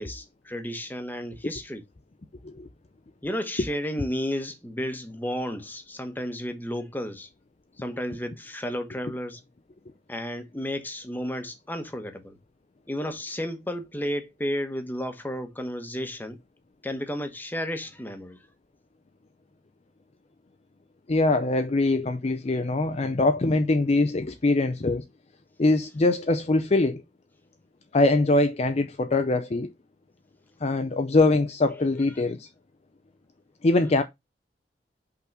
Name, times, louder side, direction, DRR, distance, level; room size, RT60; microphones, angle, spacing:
voice 1, 0.0-1.8 3.2-7.3 7.8-9.4 10.1-12.4 12.9-16.4 16.8-18.4, equal, 10° left, 1.2 m, -32 dB
voice 2, 21.1-25.0 25.6-27.0 27.9-29.7 30.6-32.5 33.6-34.0, left 2 dB, 40° left, 0.6 m, -23 dB
5.6 x 3.9 x 6.1 m
head